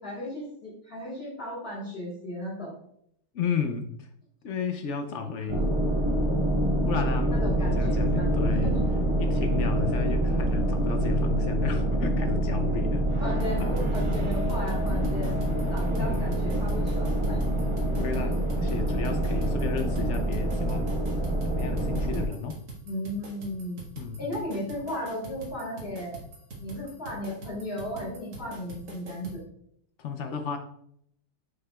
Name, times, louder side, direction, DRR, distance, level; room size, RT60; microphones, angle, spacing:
voice 1, 0.0-2.7 5.3-5.7 7.3-8.8 13.2-15.4 15.7-17.4 22.8-23.8 24.2-26.2 26.6-29.4, left 1 dB, 35° left, -7 dB, 2.9 m, -35 dB
voice 2, 3.3-4.1 4.4-5.7 6.8-7.5 7.8-8.8 9.2-13.1 13.6-13.8 14.9-15.2 16.0-16.4 17.9-21.0 21.4-22.6 24.0-24.3 30.0-30.6, left 5 dB, 65° left, 6 dB, 0.7 m, -33 dB
sound 1, 5.5-22.2, right 1 dB, 50° right, 0.3 m, -26 dB
sound 2, 13.4-29.4, right 3 dB, 85° right, 2.3 m, -43 dB
7.8 x 6.4 x 2.3 m, 0.69 s
omnidirectional pair, 1.9 m